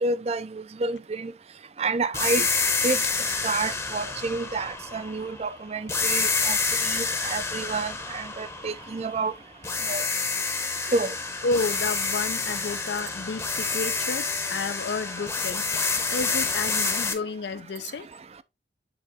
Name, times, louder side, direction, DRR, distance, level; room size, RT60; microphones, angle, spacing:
voice 1, 0.0-1.3 1.8-2.5 2.8-3.0 3.4-9.3 9.9-10.0 10.9-11.1, right 3 dB, 35° right, 0.4 m, -29 dB
sound 1, 2.1-5.4 5.9-9.3 9.6-17.1, left 4 dB, 15° left, 0.8 m, -28 dB
voice 2, 11.4-15.7 16.1-18.1, left 4 dB, 70° left, 0.5 m, -31 dB
7.9 x 3.8 x 3.4 m
head